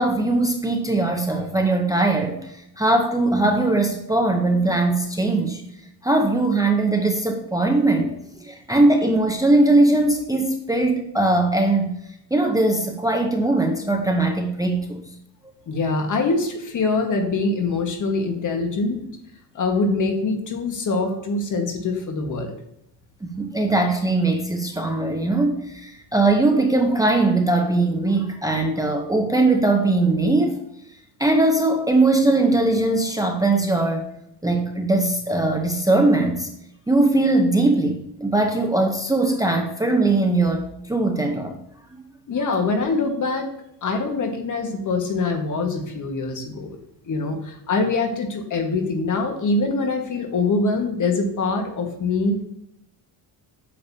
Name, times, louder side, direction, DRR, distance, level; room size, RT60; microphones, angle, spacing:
voice 1, 0.0-5.6 6.0-8.1 8.4-11.9 12.3-15.0 23.2-30.6 31.2-34.1 34.4-36.5 36.9-41.6, right 2 dB, 10° right, 3 dB, 0.6 m, -20 dB
voice 2, 15.7-19.0 19.5-22.5 42.3-43.5 43.8-46.8 47.0-52.4, left 3 dB, 45° left, 4 dB, 1.5 m, -24 dB
8.7 x 6.6 x 2.7 m, 0.77 s
cardioid pair, 130°, 40 cm